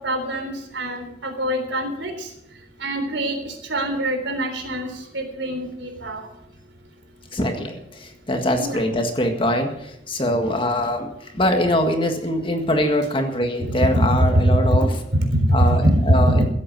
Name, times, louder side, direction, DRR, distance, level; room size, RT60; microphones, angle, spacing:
voice 1, 0.0-2.3 2.8-6.3 8.6-8.8 13.7-14.6 15.1-16.4, right 1 dB, 75° right, 4 dB, 3.8 m, -22 dB
voice 2, 7.3-15.0 15.5-16.4, left 1 dB, 25° left, 5 dB, 1.7 m, -23 dB
16.0 x 8.4 x 7.5 m, 0.78 s
head